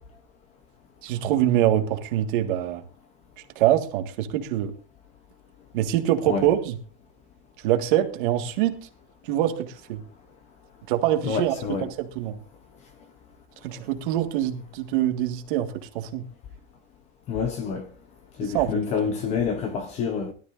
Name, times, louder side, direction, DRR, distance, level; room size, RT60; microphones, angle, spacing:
voice 1, 1.0-2.8 3.6-4.7 5.7-6.8 7.6-8.8 9.2-10.0 10.9-11.6 11.8-12.4 13.6-16.2 18.4-18.7, right 12 dB, 50° right, 1.8 m, -24 dB
voice 2, 11.2-11.9 17.3-17.9 18.4-20.3, left 6 dB, 20° left, 0.8 m, -27 dB
20.5 x 12.5 x 2.6 m
supercardioid pair, 180°, 34 cm